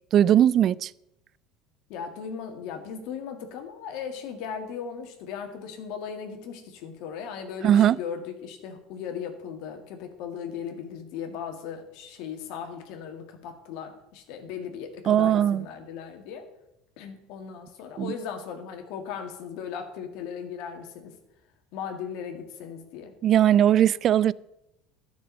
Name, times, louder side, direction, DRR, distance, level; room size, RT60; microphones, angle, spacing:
voice 1, 0.1-0.9 7.6-8.0 15.1-15.6 18.0-18.1 23.2-24.3, right 10 dB, 50° right, 0.4 m, -19 dB
voice 2, 1.9-16.5 17.0-21.1 21.7-23.1, left 7 dB, 70° left, 1.9 m, -37 dB
11.5 x 6.3 x 7.5 m
hypercardioid pair, 85°, 0 cm